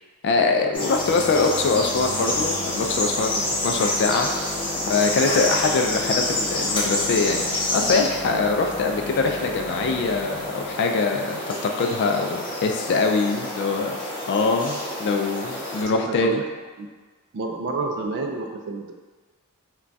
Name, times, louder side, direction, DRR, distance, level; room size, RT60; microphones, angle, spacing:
voice 1, 0.2-4.5 4.9-14.0 14.3-16.4, left 4 dB, 50° left, 3 dB, 0.3 m, -23 dB
sound 1, 0.6-12.0, left 3 dB, 30° right, 0.8 m, -40 dB
sound 2, 0.7-15.8, left 1 dB, 20° left, 0.7 m, -28 dB
voice 2, 15.9-16.4 16.8-16.9 17.3-18.9, right 3 dB, 55° right, 3 dB, 0.3 m, -29 dB
2.3 x 2.2 x 3.8 m, 1.4 s
head